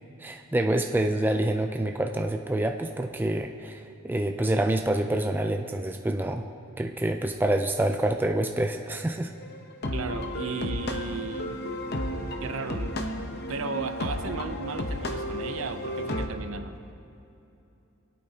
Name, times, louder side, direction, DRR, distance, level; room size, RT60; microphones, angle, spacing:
voice 1, 0.2-6.5 6.8-9.3, right 1 dB, 10° right, 5 dB, 0.3 m, -27 dB
sound 1, 9.4-16.3, left 1 dB, 50° left, 0.8 m, -33 dB
voice 2, 9.9-11.6 12.4-16.8, right 4 dB, 65° right, 8 dB, 0.6 m, -35 dB
21.5 x 8.5 x 2.8 m, 2.8 s
head